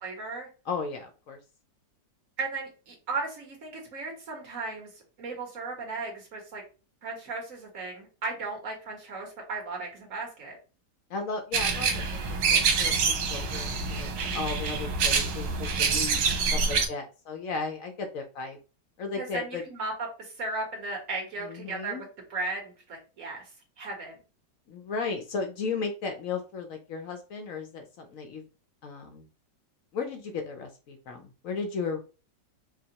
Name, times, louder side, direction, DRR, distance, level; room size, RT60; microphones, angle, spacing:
voice 1, 0.0-0.5 2.4-4.9 5.2-6.6 7.0-10.6 16.0-16.5 19.2-19.9 20.2-23.5 23.8-24.2, right 3 dB, 50° right, 0 dB, 1.7 m, -36 dB
voice 2, 0.7-1.4 11.1-18.6 19.0-19.6 21.4-22.0 24.7-28.4 28.8-29.3 29.9-32.0, left 4 dB, 70° left, 4 dB, 0.8 m, -35 dB
sound 1, 11.5-16.9, right 5 dB, 85° right, 1.4 m, -26 dB
4.8 x 2.3 x 2.8 m, 0.34 s
omnidirectional pair, 1.9 m